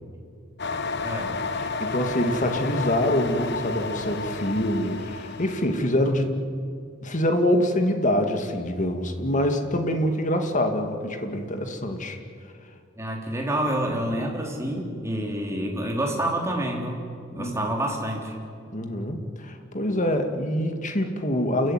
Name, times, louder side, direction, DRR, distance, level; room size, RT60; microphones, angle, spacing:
sound 1, 0.6-5.9, left 4 dB, 60° left, 1.1 m, -31 dB
voice 1, 1.0-1.3 13.0-17.0 17.3-18.3, right 1 dB, 15° right, 0 dB, 3.8 m, -28 dB
voice 2, 1.6-6.5 7.0-12.2 17.4-17.7 18.7-21.7, left 1 dB, 40° left, 5 dB, 2.2 m, -25 dB
29.0 x 15.0 x 9.8 m, 2.3 s
head